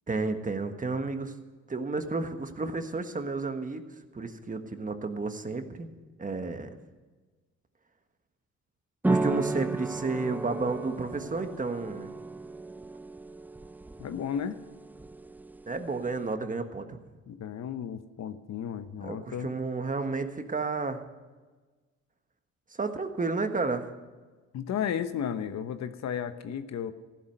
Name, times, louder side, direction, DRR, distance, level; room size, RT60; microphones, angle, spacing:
voice 1, 0.1-1.3 1.7-3.8 4.1-5.9 6.2-6.7 9.0-12.1 15.7-17.0 19.0-21.0 22.7-23.9, right 3 dB, 25° right, 7 dB, 1.5 m, -31 dB
sound 1, 9.0-16.3, right 2 dB, 5° right, 0.4 m, -34 dB
voice 2, 14.0-14.6 17.3-19.5 24.5-26.9, left 8 dB, 60° left, 10 dB, 1.0 m, -33 dB
15.0 x 11.5 x 6.6 m, 1.3 s
cardioid pair, 90°, 30 cm